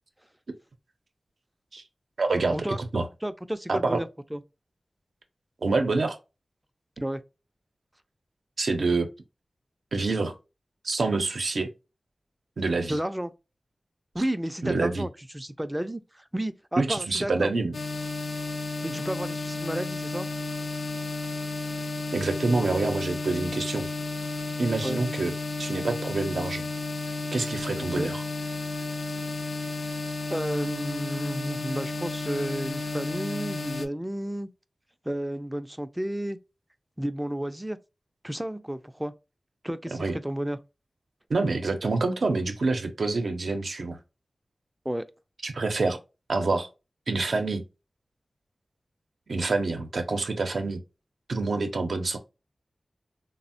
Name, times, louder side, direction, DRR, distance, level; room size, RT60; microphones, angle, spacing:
voice 1, 2.2-3.1 3.7-4.0 5.6-6.2 8.6-9.1 9.9-10.4 10.8-11.7 12.6-13.0 14.6-15.1 16.8-17.7 22.1-23.9 24.6-25.3 25.6-26.6 27.3-28.2 39.9-40.2 41.3-44.0 45.4-46.0 46.3-46.7 47.1-47.6 49.3-50.8 51.3-52.2, right 3 dB, 85° right, 0.5 m, -27 dB
voice 2, 3.2-4.4 7.0-7.2 12.9-13.3 14.1-17.5 18.8-20.3 24.8-25.0 27.7-28.1 30.3-34.5 35.0-36.4 37.0-37.8 38.2-39.1 39.6-40.6 44.9-45.1, right 1 dB, 10° right, 0.3 m, -32 dB
sound 1, 17.7-33.9, left 3 dB, 70° left, 0.4 m, -32 dB
3.3 x 2.0 x 2.5 m
wide cardioid pair, 65°, 0 cm